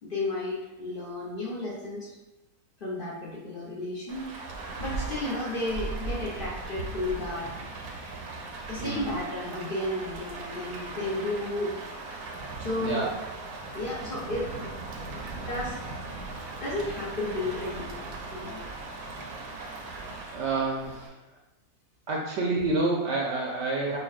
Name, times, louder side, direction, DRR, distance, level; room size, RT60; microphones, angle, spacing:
voice 1, 0.0-2.1 2.8-4.3 4.8-7.5 8.7-11.8 12.6-13.0 13.7-15.8 16.6-18.6 20.0-20.1, left 2 dB, 50° left, -5 dB, 0.7 m, -33 dB
Rain, 4.1-21.1, right 3 dB, 90° right, 1.1 m, -38 dB
voice 2, 8.8-9.2 12.8-13.1 19.8-20.0 20.3-21.1 22.1-24.0, right 3 dB, 65° right, -2 dB, 0.7 m, -28 dB
5.4 x 2.2 x 2.4 m, 1.0 s
omnidirectional pair, 1.5 m